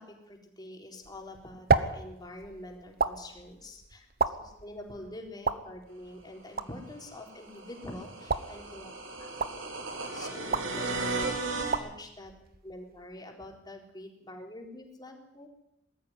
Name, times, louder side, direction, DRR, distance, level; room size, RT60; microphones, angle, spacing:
voice 1, 0.0-8.9 9.2-9.7 10.1-11.0 11.4-12.3 12.6-15.5, left 1 dB, 20° left, 1 dB, 4.1 m, -46 dB
sound 1, 1.0-13.2, right 4 dB, 50° right, 1.1 m, -34 dB
sound 2, 6.9-11.8, right 3 dB, 75° right, 4.1 m, -35 dB
20.0 x 13.5 x 9.9 m, 0.84 s
head